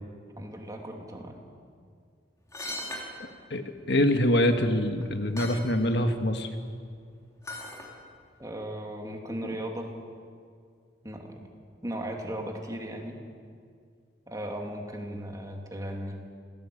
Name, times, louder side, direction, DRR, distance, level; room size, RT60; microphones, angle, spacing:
voice 1, 0.4-1.4 8.4-9.9 11.0-11.5 11.8-13.2 14.3-16.2, right 1 dB, 20° right, 1 dB, 2.7 m, -37 dB
sound 1, 2.5-3.1 4.4-4.5 5.0-5.1 5.4-5.6 7.4-7.9 8.3-8.4, left 1 dB, 15° left, 3.5 m, -37 dB
voice 2, 3.5-6.5, left 1 dB, 60° left, 6 dB, 1.7 m, -25 dB
26.5 x 17.5 x 8.5 m, 2.2 s
head